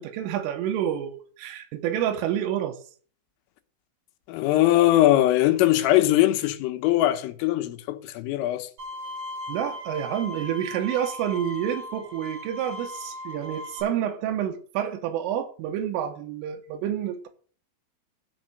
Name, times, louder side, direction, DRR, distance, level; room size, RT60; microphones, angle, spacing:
voice 1, 0.0-2.8 9.5-17.3, right 10 dB, 85° right, 3.8 m, -29 dB
voice 2, 4.3-8.7, left 14 dB, 85° left, 3.6 m, -21 dB
Bowed string instrument, 8.8-13.8, left 1 dB, 55° right, 8.7 m, -38 dB
13.0 x 5.5 x 7.7 m
omnidirectional pair, 5.7 m